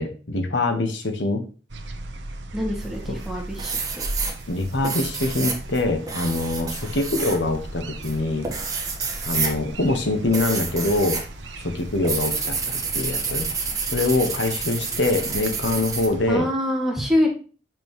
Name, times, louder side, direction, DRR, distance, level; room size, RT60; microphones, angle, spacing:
voice 1, 0.0-1.4 3.1-3.2 4.5-8.5 9.3-11.2 11.6-13.5 13.9-16.5, left 2 dB, 75° left, 6 dB, 1.2 m, -24 dB
sound 1, 1.7-16.4, right 1 dB, 90° right, 1.0 m, -37 dB
voice 2, 2.5-3.7 16.3-17.3, left 1 dB, ahead, -1 dB, 2.0 m, -24 dB
Sharpie Marker Pen Writing and Scribbling on Paper, 2.8-3.3 3.6-11.3 11.6-16.1, right 4 dB, 20° right, 1.4 m, -29 dB
6.9 x 6.0 x 3.0 m, 0.37 s
head